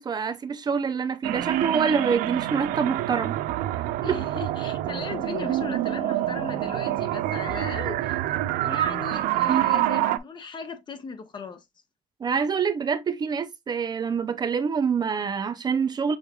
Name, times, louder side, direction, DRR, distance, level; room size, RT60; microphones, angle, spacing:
voice 1, 0.0-3.4 4.1-4.2 12.2-16.2, right 6 dB, 30° right, 0.5 m, -26 dB
sound 1, 1.2-10.2, right 13 dB, 85° right, 0.5 m, -26 dB
voice 2, 4.0-8.2 8.6-11.6, left 5 dB, 35° left, 1.1 m, -37 dB
6.3 x 3.4 x 2.3 m
cardioid pair, 120°, 14 cm